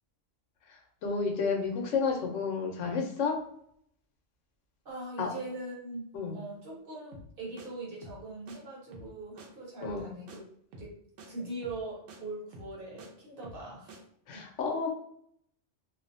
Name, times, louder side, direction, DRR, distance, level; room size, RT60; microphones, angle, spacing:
voice 1, 1.0-3.4 5.2-5.3 6.1-6.4 9.8-10.1 14.3-14.9, left 5 dB, 85° left, 2 dB, 1.0 m, -31 dB
voice 2, 4.8-6.0 6.3-10.4 10.7-10.9 11.3-13.9, right 2 dB, 55° right, -4 dB, 1.0 m, -41 dB
sound 1, 7.1-7.3 7.6-7.7 8.0-8.2 8.5-8.6 8.9-9.1 9.4-9.5 9.8-10.0 10.3-10.4 10.7-10.9 11.2-11.3 11.6-11.8 12.1-12.2 12.5-13.1 13.4-13.6 13.9-14.0, right 1 dB, 90° right, 0.9 m, -48 dB
2.6 x 2.0 x 2.5 m, 0.69 s
omnidirectional pair, 1.2 m